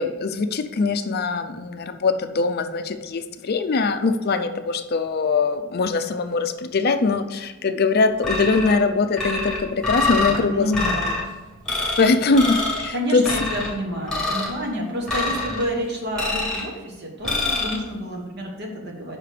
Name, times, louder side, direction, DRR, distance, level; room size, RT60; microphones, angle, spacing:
voice 1, 0.0-10.7 12.0-13.2, left 4 dB, 50° left, 8 dB, 0.5 m, -22 dB
sound 1, 8.2-8.8 9.2-10.4 10.7-11.2 11.7-12.1 12.3-12.9 13.2-13.7 14.1-14.5 15.1-15.6 16.2-16.7 17.2-17.7, left 2 dB, 5° left, 1.9 m, -25 dB
voice 2, 10.2-11.2 12.9-19.2, equal, 50° right, 0 dB, 1.5 m, -29 dB
5.8 x 4.9 x 6.6 m, 1.3 s
head